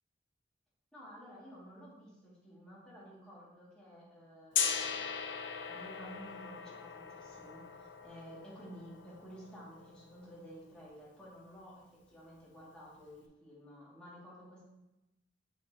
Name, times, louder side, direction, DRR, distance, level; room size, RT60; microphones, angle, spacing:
voice 1, 0.9-5.2 5.7-14.6, equal, 5° left, -9 dB, 2.4 m, -52 dB
Gong, 4.5-10.4, left 6 dB, 85° left, 0.7 m, -39 dB
6.2 x 5.9 x 2.9 m, 0.97 s
head